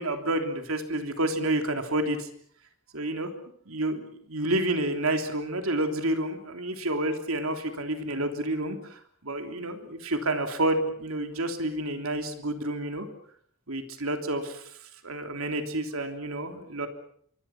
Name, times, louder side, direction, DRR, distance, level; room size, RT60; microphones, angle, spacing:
voice 1, 0.0-2.3 2.9-3.3 3.7-4.0 4.3-13.1 13.7-14.6 15.0-16.9, right 1 dB, 75° right, 6 dB, 3.2 m, -29 dB
27.0 x 23.5 x 6.0 m, 0.63 s
head